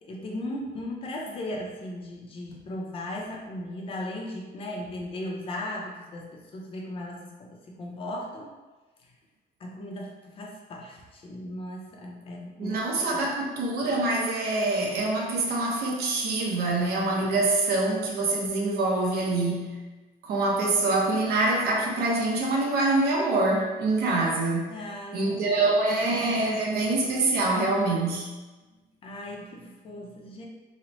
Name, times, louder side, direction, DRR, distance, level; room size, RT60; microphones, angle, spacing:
voice 1, 0.0-8.5 9.6-13.3 16.7-16.8 24.7-25.8 29.0-30.5, left 1 dB, 35° left, -1 dB, 0.5 m, -37 dB
voice 2, 12.6-19.8 20.2-24.8 25.1-28.3, right 2 dB, 70° right, -1 dB, 0.7 m, -25 dB
3.0 x 2.1 x 3.9 m, 1.2 s
cardioid pair, 170°, 17 cm